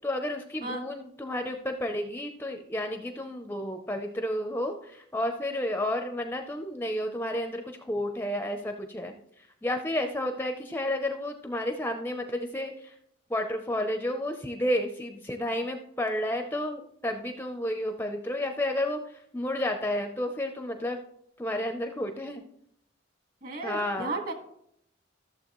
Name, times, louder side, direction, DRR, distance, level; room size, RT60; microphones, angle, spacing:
voice 1, 0.0-12.9 13.3-21.0 21.4-22.4 23.6-24.1, left 1 dB, 10° left, 6 dB, 0.5 m, -31 dB
voice 2, 23.4-24.3, right 2 dB, 45° right, 4 dB, 1.4 m, -34 dB
14.0 x 6.9 x 3.0 m, 0.73 s
head